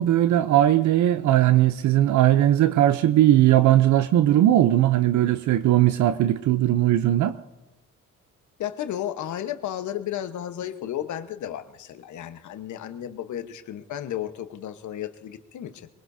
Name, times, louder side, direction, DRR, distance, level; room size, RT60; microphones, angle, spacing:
voice 1, 0.0-7.4, right 13 dB, 75° right, 0.6 m, -19 dB
voice 2, 8.6-15.9, left 11 dB, 75° left, 1.2 m, -33 dB
23.5 x 22.0 x 2.7 m
cardioid pair, 90°, 30 cm